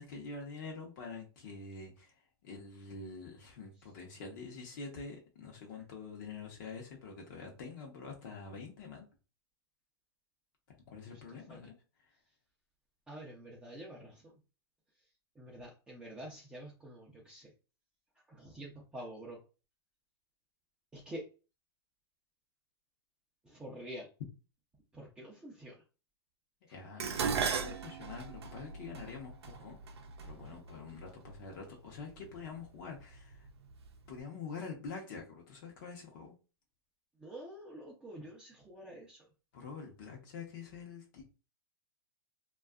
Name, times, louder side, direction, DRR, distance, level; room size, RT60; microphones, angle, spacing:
voice 1, 0.0-2.1 2.4-9.1 10.9-11.8 26.7-29.9 30.2-33.5 34.1-36.3 39.5-41.2, left 4 dB, 50° left, 0 dB, 0.8 m, -46 dB
voice 2, 13.1-14.3 15.4-17.5 18.3-19.4 20.9-21.2 23.4-24.1 24.9-25.8 30.3-30.6 37.2-39.3, right 1 dB, 5° right, -4 dB, 0.5 m, -47 dB
Dishes pots and pans, 27.0-31.4 32.2-32.6 33.0-33.9 34.1-34.2, right 6 dB, 85° right, 0.5 m, -37 dB
2.6 x 2.3 x 2.3 m, 0.33 s
hypercardioid pair, 150°, 13 cm